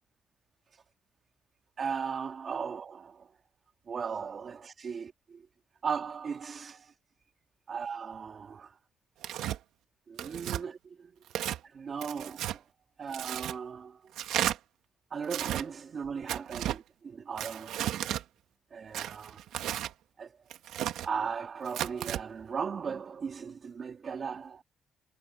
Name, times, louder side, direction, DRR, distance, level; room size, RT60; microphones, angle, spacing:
voice 1, 1.8-3.3 3.9-5.4 5.8-6.9 7.7-8.8 10.1-11.1 11.6-12.6 13.0-14.1 15.1-17.9 18.7-19.5 20.2-20.3 20.9-24.6, right 6 dB, 45° right, 2.1 m, -37 dB
Tearing, 9.2-9.6 10.2-10.6 11.3-11.6 12.0-12.6 13.1-13.6 14.1-14.6 15.2-15.6 16.3-16.8 17.4-18.2 18.9-19.9 20.5-21.1 21.7-22.2, right 12 dB, 85° right, 1.6 m, -33 dB
cardioid pair, 90°, 0 cm